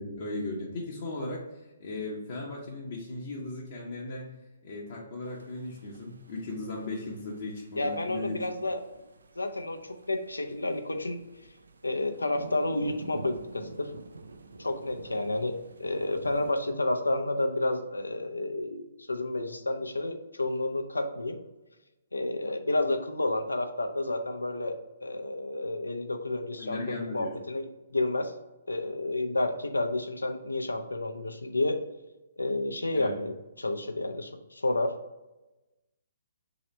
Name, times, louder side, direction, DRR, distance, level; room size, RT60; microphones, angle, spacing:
voice 1, 0.0-1.4 1.8-8.5 26.6-27.3 32.9-33.1, left 2 dB, 55° left, -4 dB, 0.7 m, -37 dB
sound 1, 5.2-16.5, right 3 dB, 75° right, 0.3 m, -49 dB
voice 2, 7.8-9.0 9.4-11.2 11.8-13.9 14.6-21.4 22.1-28.3 28.7-31.8 32.4-34.9, left 2 dB, 90° left, 5 dB, 0.4 m, -30 dB
3.1 x 2.8 x 4.1 m, 1.0 s
figure-of-eight pair, 135°, 0 cm